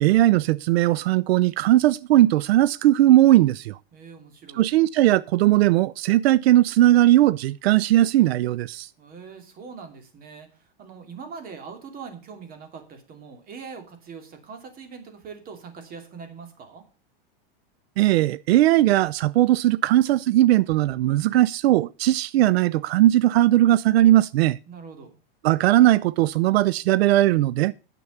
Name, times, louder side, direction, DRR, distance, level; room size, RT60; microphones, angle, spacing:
voice 1, 0.0-3.8 4.6-8.9 18.0-24.6 25.4-27.7, right 14 dB, 90° right, 0.5 m, -18 dB
voice 2, 3.9-4.6 9.0-16.8 24.7-25.2, right 5 dB, 30° right, 2.7 m, -42 dB
9.9 x 6.9 x 7.0 m
supercardioid pair, 150°, 30 cm